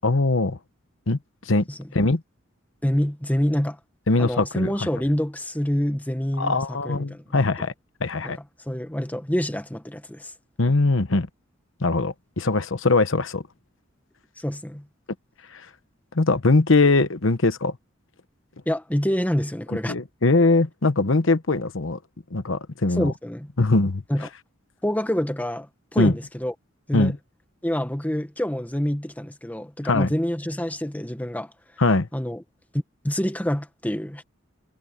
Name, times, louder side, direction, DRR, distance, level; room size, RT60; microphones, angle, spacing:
voice 1, 0.0-0.6 1.1-1.2 1.4-1.6 1.9-2.2 4.1-4.7 6.4-7.7 8.0-8.4 10.6-11.3 11.8-13.4 15.5-15.7 16.1-17.8 19.9-22.0 22.3-23.1 23.6-24.0 26.0-26.1 26.9-27.2 29.8-30.1 31.8-32.1, left 3 dB, 75° left, 1.1 m, -21 dB
voice 2, 2.8-3.8 4.2-7.2 8.2-8.3 8.7-10.3 14.4-14.9 18.6-19.9 23.0-23.5 24.1-24.3 24.8-26.5 26.9-27.1 27.6-31.5 32.1-32.4 32.7-34.2, equal, 10° left, 1.3 m, -26 dB
head